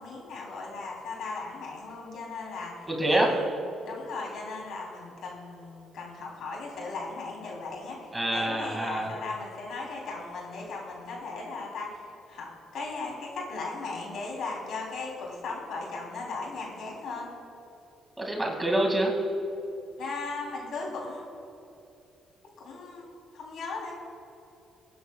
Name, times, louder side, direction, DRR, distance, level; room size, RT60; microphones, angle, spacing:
voice 1, 0.0-3.5 3.8-17.3 20.0-21.7 22.6-23.9, left 3 dB, 70° left, -2 dB, 3.3 m, -37 dB
voice 2, 2.9-3.3 8.1-9.1 18.2-19.2, right 1 dB, 15° right, 0 dB, 2.2 m, -26 dB
24.5 x 10.0 x 2.3 m, 2.7 s
cardioid pair, 90°, 0 cm